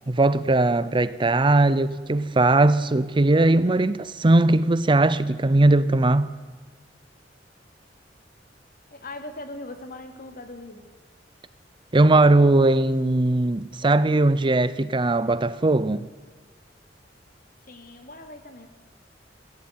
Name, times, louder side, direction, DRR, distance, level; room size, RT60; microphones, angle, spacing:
voice 1, 0.1-6.3 11.9-16.1, right 2 dB, 30° right, 0.6 m, -19 dB
voice 2, 8.9-10.8 17.6-18.7, left 2 dB, 55° left, 2.6 m, -40 dB
23.0 x 16.0 x 9.5 m
head